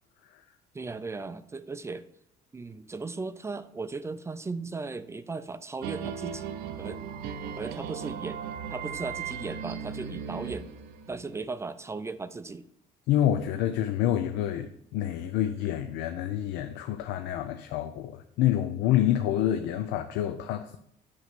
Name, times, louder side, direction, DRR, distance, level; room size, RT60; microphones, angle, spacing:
voice 1, 0.7-2.0 2.5-6.5 6.8-7.0 7.6-8.4 8.7-10.7 11.1-12.6, right 3 dB, 15° right, 12 dB, 0.4 m, -37 dB
sound 1, 5.8-11.4, right 7 dB, 90° right, 0.6 m, -37 dB
voice 2, 13.1-20.8, left 11 dB, 90° left, 8 dB, 0.5 m, -27 dB
8.0 x 3.0 x 6.1 m, 0.71 s
cardioid pair, 110°, 17 cm